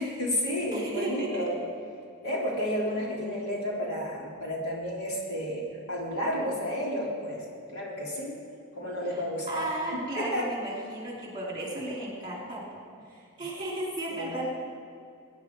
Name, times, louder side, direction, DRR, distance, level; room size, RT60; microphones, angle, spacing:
voice 1, 0.0-1.6 2.2-7.4 7.7-8.4 8.8-9.7 9.9-10.5 14.1-14.3, equal, 85° left, -3 dB, 3.6 m, -31 dB
voice 2, 0.7-1.6 9.1-12.8 13.1-14.5, right 1 dB, 20° right, -3 dB, 3.8 m, -35 dB
21.0 x 10.5 x 4.9 m, 2.4 s
head